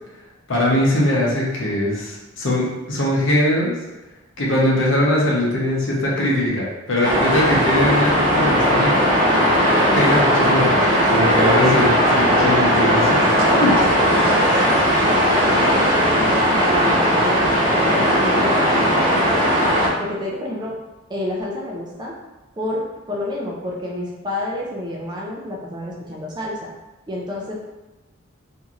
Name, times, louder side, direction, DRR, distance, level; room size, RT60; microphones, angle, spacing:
voice 1, 0.5-3.7 4.4-9.1 9.9-10.8 11.1-13.7, left 1 dB, 65° left, -4 dB, 0.7 m, -21 dB
sound 1, 7.0-19.9, equal, 45° right, 1.1 m, -17 dB
voice 2, 11.2-11.5 13.5-19.2 20.0-20.8 21.1-22.2 22.6-26.7 27.1-27.5, left 1 dB, 20° right, -3 dB, 0.4 m, -29 dB
2.9 x 2.6 x 2.4 m, 1.1 s
head